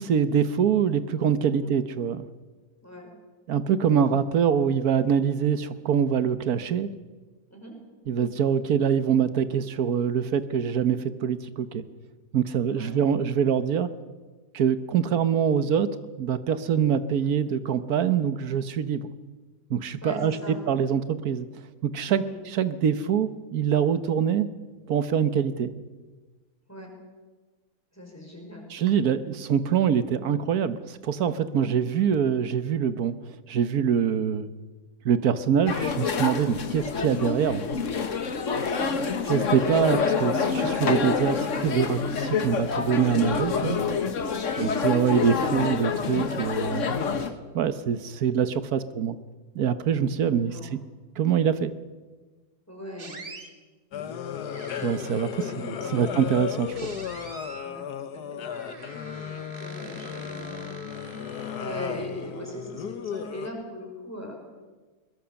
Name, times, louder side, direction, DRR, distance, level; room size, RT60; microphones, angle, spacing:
voice 1, 0.0-2.3 3.5-6.9 8.1-11.8 12.3-13.9 14.5-19.1 19.7-21.5 21.8-22.2 22.5-24.5 24.9-25.7 28.7-33.2 33.5-34.5 35.0-37.6 39.3-43.8 44.6-49.2 49.5-50.8 51.2-51.7 54.8-55.5 55.9-56.8, right 8 dB, 70° right, 12 dB, 1.5 m, -24 dB
voice 2, 20.0-20.6 22.1-22.4 26.7-26.9 27.9-28.7 31.6-31.8 36.7-36.9 38.7-39.1 50.2-50.7 52.7-53.2 55.4-56.2 56.6-57.0 57.6-58.5 59.4-60.7 61.6-64.3, left 1 dB, 10° left, 0 dB, 5.4 m, -40 dB
sound 1, 35.7-47.3, left 5 dB, 50° left, 1.6 m, -27 dB
sound 2, 53.0-53.5 54.5-55.3 56.7-57.7 58.5-62.0, right 3 dB, 35° right, 1.8 m, -44 dB
sound 3, 53.9-63.5, left 8 dB, 80° left, 1.6 m, -35 dB
22.0 x 21.0 x 7.0 m, 1.3 s
omnidirectional pair, 1.7 m